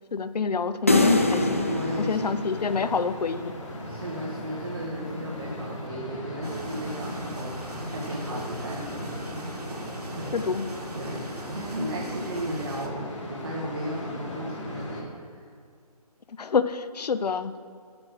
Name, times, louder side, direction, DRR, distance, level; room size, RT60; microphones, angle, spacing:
voice 1, 0.1-1.7 2.0-3.5 10.3-10.7 16.4-17.6, left 5 dB, 85° left, 13 dB, 0.5 m, -27 dB
sound 1, 0.9-15.0, left 1 dB, 50° left, 1.7 m, -38 dB
sound 2, 0.9-3.3, left 1 dB, 20° left, 0.4 m, -24 dB
voice 2, 1.7-2.2 3.9-9.2 10.1-10.4 10.9-15.5, right 1 dB, 40° right, -4 dB, 1.4 m, -35 dB
sound 3, 6.4-12.9, right 2 dB, 80° right, 1.6 m, -40 dB
8.6 x 6.2 x 6.5 m, 2.2 s
hypercardioid pair, 170°, 20 cm